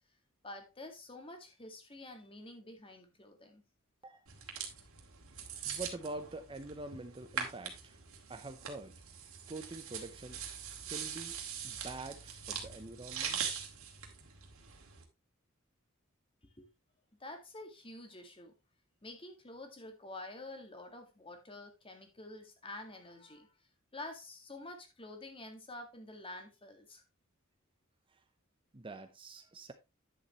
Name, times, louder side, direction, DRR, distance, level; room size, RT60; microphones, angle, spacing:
voice 1, 0.4-3.6 16.4-16.7 17.2-18.5 19.0-23.5 23.9-27.0, left 2 dB, 25° left, 1.9 m, -48 dB
sound 1, 4.3-15.0, right 7 dB, 75° right, 2.3 m, -42 dB
voice 2, 5.6-8.0 8.3-9.0 9.5-10.4 10.9-11.4 11.6-13.4 28.1-28.2 28.7-29.7, right 2 dB, 25° right, 0.7 m, -45 dB
10.0 x 7.2 x 3.1 m
head